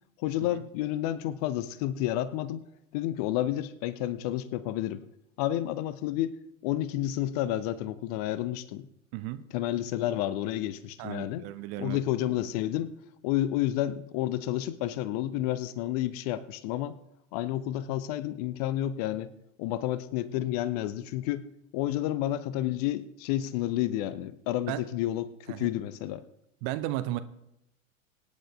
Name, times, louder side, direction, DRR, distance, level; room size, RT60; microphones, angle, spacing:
voice 1, 0.2-2.6 2.9-5.0 5.4-6.4 6.6-8.9 9.5-11.5 11.8-12.9 13.2-16.9 17.3-19.3 19.6-21.5 21.7-26.2, left 13 dB, 30° left, 0.5 m, -30 dB
voice 2, 11.0-12.0 24.7-24.8 25.5-25.7 26.6-27.2, right 15 dB, 25° right, 0.4 m, -34 dB
24.0 x 10.0 x 2.4 m
figure-of-eight pair, 90°, 41 cm